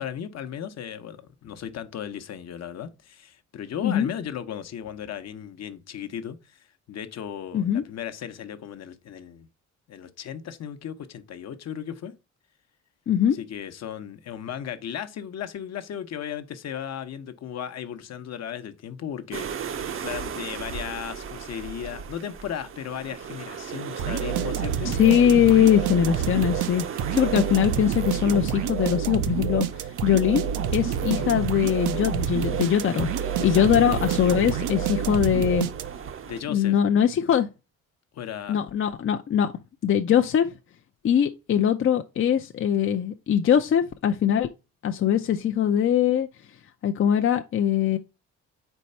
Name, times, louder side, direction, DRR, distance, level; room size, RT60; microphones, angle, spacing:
voice 1, 0.0-9.5 9.9-12.1 13.3-24.9 31.0-31.3 33.4-33.7 36.2-36.8 38.1-38.6, left 9 dB, 60° left, 0.9 m, -36 dB
voice 2, 13.1-13.4 24.8-26.8 27.1-35.7 36.5-37.5 38.5-39.5 39.8-40.5 41.0-44.5 44.8-46.3 46.8-48.0, left 9 dB, 45° left, 0.5 m, -22 dB
sound 1, 19.3-36.4, right 7 dB, 45° right, 0.7 m, -37 dB
sound 2, 24.0-36.2, right 9 dB, 80° right, 0.7 m, -28 dB
4.5 x 4.2 x 5.4 m
cardioid pair, 90°, 30 cm